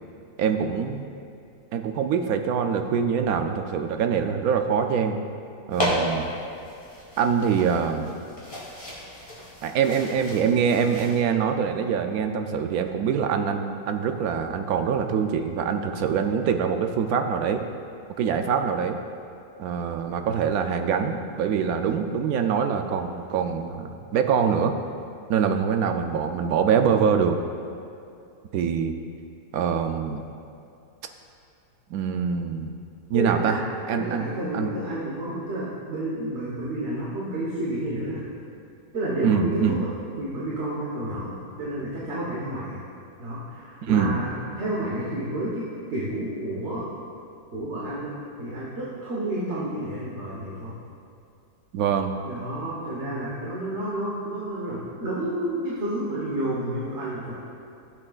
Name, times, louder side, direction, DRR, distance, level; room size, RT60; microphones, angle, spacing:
voice 1, 0.4-1.1 1.7-5.2 5.7-6.3 7.2-8.1 9.6-17.6 18.2-19.0 19.6-24.7 25.3-27.4 28.5-28.9 29.5-30.2 31.9-32.7 33.1-33.6 33.9-34.3 34.5-34.7 39.2-39.8 43.8-44.1 51.7-52.2, right 7 dB, 70° right, 6 dB, 1.0 m, -24 dB
sound 1, 5.7-11.2, equal, 20° left, 1.9 m, -33 dB
voice 2, 33.1-33.6 33.9-38.2 38.9-39.9 40.2-42.8 43.2-45.6 45.9-46.9 47.5-50.8 52.2-57.3, right 1 dB, 45° right, -7 dB, 1.5 m, -30 dB
13.5 x 7.6 x 2.4 m, 2.5 s
omnidirectional pair, 1.7 m